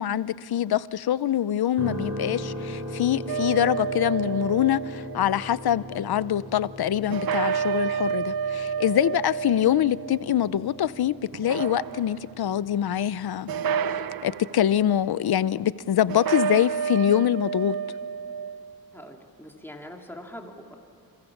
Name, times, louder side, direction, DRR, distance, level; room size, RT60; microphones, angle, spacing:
voice 1, 0.0-13.5 14.2-17.8, left 10 dB, 80° left, 17 dB, 0.7 m, -24 dB
sound 1, 1.8-15.8, equal, 45° right, 5.3 m, -39 dB
sound 2, 3.3-5.3 7.1-10.8 11.3-12.3 13.5-14.6 16.1-18.8, right 6 dB, 70° right, 0.7 m, -30 dB
voice 2, 18.9-20.7, left 1 dB, 5° left, 1 dB, 2.7 m, -43 dB
29.5 x 28.0 x 7.2 m, 2.7 s
wide cardioid pair, 145°, 37 cm